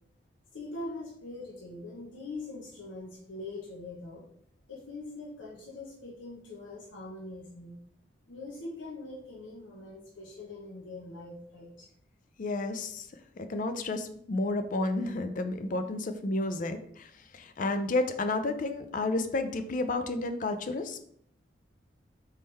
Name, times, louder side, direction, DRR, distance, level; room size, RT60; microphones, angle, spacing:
voice 1, 0.5-4.2 4.7-7.8 8.3-11.9, left 2 dB, 80° left, -4 dB, 0.9 m, -42 dB
voice 2, 12.4-13.1 13.4-21.0, left 2 dB, 45° left, 9 dB, 0.4 m, -31 dB
4.1 x 3.6 x 3.2 m, 0.67 s
head